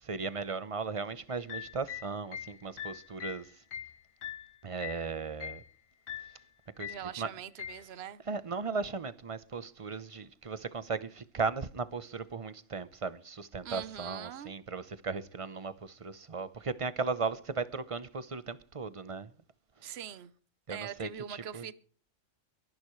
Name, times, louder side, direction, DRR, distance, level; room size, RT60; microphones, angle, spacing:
voice 1, 0.0-3.5 4.6-5.6 6.8-7.3 8.3-19.3 20.7-21.7, right 4 dB, 30° right, 0.8 m, -37 dB
sound 1, 1.3-5.1 5.4-5.7 6.1-6.4 6.8-7.1 7.6-7.9, left 10 dB, 85° left, 1.3 m, -42 dB
voice 2, 6.8-8.2 13.6-14.5 19.8-20.3 20.7-21.7, right 9 dB, 60° right, 1.1 m, -42 dB
23.0 x 11.5 x 3.2 m
omnidirectional pair, 1.3 m